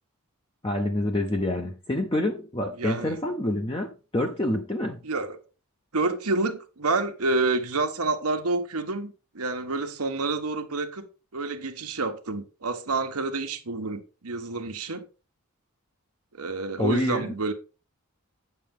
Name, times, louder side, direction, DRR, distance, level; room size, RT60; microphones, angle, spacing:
voice 1, 0.6-5.0 16.8-17.3, left 1 dB, 20° left, 0.7 m, -27 dB
voice 2, 2.8-3.1 5.0-5.4 5.9-11.1 11.3-15.0 16.3-17.5, right 3 dB, 85° right, 1.3 m, -28 dB
9.2 x 6.6 x 3.6 m
head